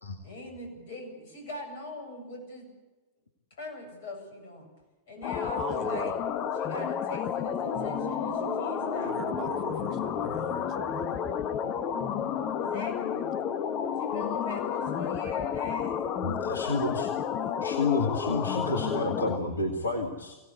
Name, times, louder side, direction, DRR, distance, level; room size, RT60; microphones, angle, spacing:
voice 1, 0.2-2.7 3.5-4.7 5.1-6.2 6.6-9.1 12.6-13.3 14.0-16.0 17.4-17.6, left 2 dB, 55° left, 3 dB, 7.8 m, -41 dB
sound 1, 5.2-19.4, left 8 dB, 35° left, 1.4 m, -31 dB
voice 2, 5.5-6.2 9.0-11.1 16.4-16.9, right 8 dB, 40° right, 10 dB, 1.4 m, -42 dB
sound 2, 7.6-15.0, right 7 dB, 55° right, 1.7 m, -44 dB
voice 3, 16.2-17.3 17.6-20.4, left 3 dB, 75° left, 5 dB, 2.0 m, -30 dB
24.0 x 18.0 x 8.4 m, 1.1 s
figure-of-eight pair, 90°, 0 cm